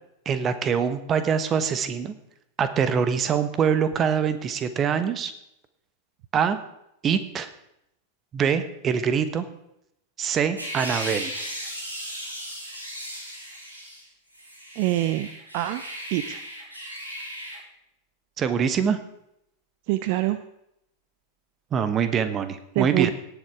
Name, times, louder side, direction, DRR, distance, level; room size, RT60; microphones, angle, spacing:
voice 1, 0.2-2.1 2.6-5.3 6.3-6.6 7.0-7.5 8.3-9.4 10.2-11.3 18.4-19.0 21.7-23.1, right 7 dB, 25° right, 11 dB, 1.1 m, -24 dB
sound 1, 10.6-14.0 14.3-17.6, equal, 80° right, 3.9 m, -36 dB
voice 2, 14.8-15.3 15.5-15.8 16.1-16.4 19.9-20.4 22.8-23.1, right 16 dB, 45° right, 12 dB, 0.5 m, -24 dB
17.5 x 7.2 x 4.8 m, 0.80 s
figure-of-eight pair, 90°, 0 cm